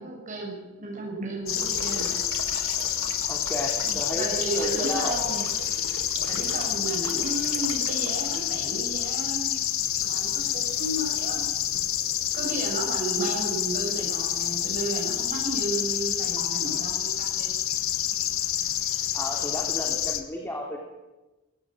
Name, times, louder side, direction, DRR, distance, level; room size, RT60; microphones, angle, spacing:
voice 1, 0.0-2.2 3.8-5.4 6.3-11.5 12.3-17.5, right 2 dB, 35° right, -2 dB, 6.4 m, -33 dB
sound 1, 1.5-20.2, left 11 dB, 85° left, 1.4 m, -28 dB
sound 2, 1.5-8.7, right 5 dB, 70° right, 1.9 m, -40 dB
voice 2, 3.3-5.2 19.1-20.8, left 1 dB, 10° left, 0 dB, 2.6 m, -33 dB
sound 3, 3.9-15.7 16.4-16.5 18.7-19.0, right 6 dB, 90° right, 6.4 m, -51 dB
21.0 x 18.0 x 7.5 m, 1.1 s
head